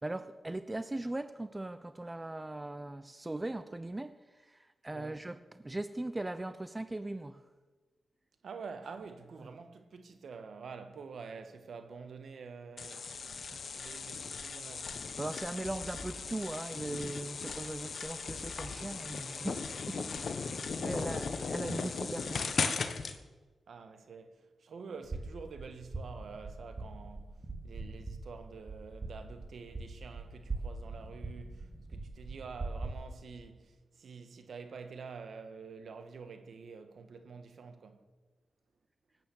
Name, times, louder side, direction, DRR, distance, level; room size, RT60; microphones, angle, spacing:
voice 1, 0.0-4.2 4.4-7.4 9.4-9.5 13.5-13.6 15.2-19.6 19.9-22.6, right 2 dB, 25° right, 0.8 m, -39 dB
voice 2, 8.4-13.1 13.7-15.0 20.3-20.7 23.7-24.3 24.6-27.3 27.6-38.0, right 5 dB, 70° right, 1.5 m, -47 dB
sound 1, 12.8-23.2, left 5 dB, 65° left, 1.2 m, -37 dB
sound 2, 25.0-32.9, right 3 dB, 45° right, 2.8 m, -42 dB
18.5 x 9.1 x 7.2 m
supercardioid pair, 45°, 0 cm